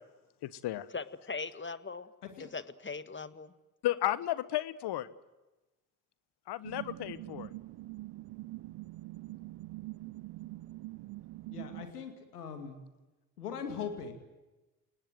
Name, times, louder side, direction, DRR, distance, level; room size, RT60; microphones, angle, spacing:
voice 1, 0.4-0.9 3.8-5.1 6.5-7.5, left 14 dB, 60° left, 17 dB, 1.3 m, -33 dB
voice 2, 0.9-2.1 2.4-3.5, left 4 dB, 25° left, 13 dB, 1.7 m, -40 dB
sound 1, 6.6-11.9, right 18 dB, 60° right, 0.8 m, -44 dB
voice 3, 11.5-12.8 13.4-14.1, left 6 dB, 90° left, 7 dB, 2.4 m, -40 dB
29.0 x 19.0 x 7.8 m, 1.1 s
hypercardioid pair, 45°, 45 cm